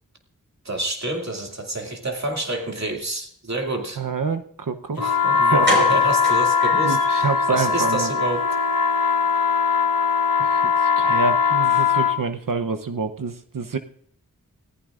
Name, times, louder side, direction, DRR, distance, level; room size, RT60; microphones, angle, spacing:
voice 1, 0.6-4.0 5.0-8.5, right 2 dB, 50° right, 1 dB, 2.5 m, -28 dB
voice 2, 4.0-5.0 5.3-5.7 6.8-8.1 10.4-13.8, right 4 dB, 65° right, 7 dB, 0.9 m, -27 dB
sound 1, 5.0-12.2, left 6 dB, 70° left, 1.1 m, -20 dB
sound 2, 5.0-5.1 5.6-7.4 7.8-7.9 8.2-8.4 8.7-8.8, right 1 dB, 35° right, 4.6 m, -28 dB
24.5 x 15.5 x 2.5 m, 0.62 s
wide cardioid pair, 75°, 34 cm